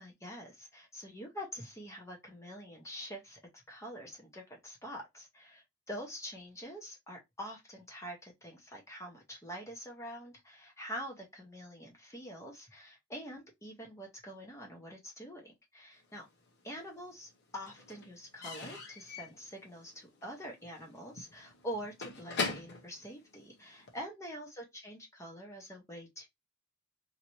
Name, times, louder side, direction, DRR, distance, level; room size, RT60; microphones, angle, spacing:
voice 1, 0.0-16.2 16.6-26.3, equal, 15° left, 0.9 m, -45 dB
Slam / Squeak / Wood, 16.2-17.0 17.2-24.0, left 3 dB, 55° left, 0.9 m, -42 dB
2.9 x 2.7 x 2.9 m
head